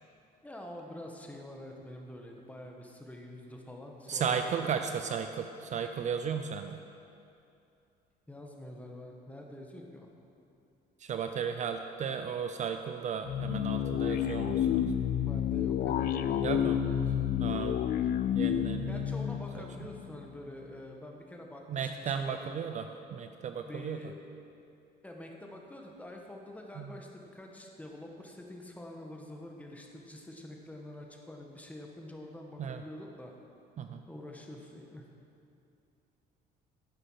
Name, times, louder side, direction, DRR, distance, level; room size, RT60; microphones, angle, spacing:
voice 1, 0.4-4.7 8.3-10.1 15.2-17.3 18.9-22.5 23.6-24.2 25.0-33.3 34.1-35.0, left 1 dB, 10° left, 1 dB, 1.4 m, -46 dB
voice 2, 4.1-6.8 11.0-14.9 16.4-16.8 17.4-17.8 18.3-19.0 21.7-22.8 23.1-24.0 26.8-26.9 32.6-32.8 33.8-34.0, right 7 dB, 45° right, 7 dB, 0.5 m, -35 dB
sound 1, 13.2-20.4, left 9 dB, 60° left, 0.5 m, -30 dB
10.5 x 8.1 x 5.8 m, 2.6 s
cardioid pair, 110°, 17 cm